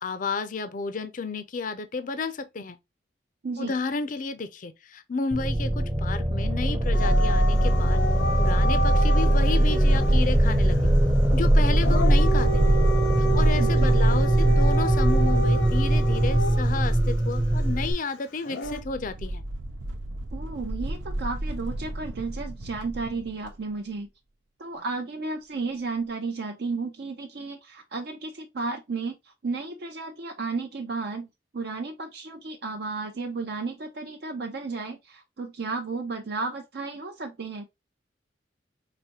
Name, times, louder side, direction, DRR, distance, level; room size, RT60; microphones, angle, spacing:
voice 1, 0.0-2.8 3.6-8.0 8.4-10.9 11.3-12.6 13.2-19.4, left 4 dB, 45° left, 0.5 m, -32 dB
voice 2, 3.4-3.7 13.6-14.0 20.3-24.1 24.6-31.3 31.5-37.6, right 4 dB, 60° right, 0.5 m, -33 dB
sound 1, 5.3-17.9, right 1 dB, 25° right, 0.8 m, -21 dB
Dog / Siren, 6.9-10.2 11.7-16.8 18.4-18.8, right 1 dB, 80° left, 0.8 m, -30 dB
sound 2, 18.6-23.6, right 1 dB, 90° right, 0.7 m, -35 dB
4.9 x 2.6 x 2.8 m
head